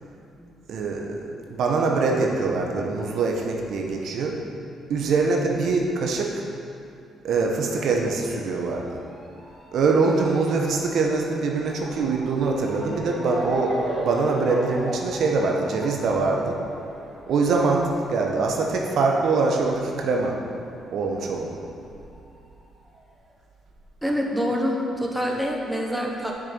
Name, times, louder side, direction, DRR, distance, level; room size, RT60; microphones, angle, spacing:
voice 1, 0.7-1.2 1.5-4.4 4.9-6.3 7.2-9.0 9.7-13.7 14.0-16.6 17.3-20.4 20.9-21.6, right 4 dB, 70° right, 1 dB, 1.0 m, -23 dB
Motor vehicle (road) / Siren, 7.8-20.8 21.1-22.3 22.9-23.0 23.3-23.4, right 1 dB, 35° right, 1.9 m, -37 dB
voice 2, 24.0-26.3, equal, 5° right, -1 dB, 1.2 m, -26 dB
6.9 x 6.6 x 6.0 m, 2.5 s
cardioid pair, 90°, 0 cm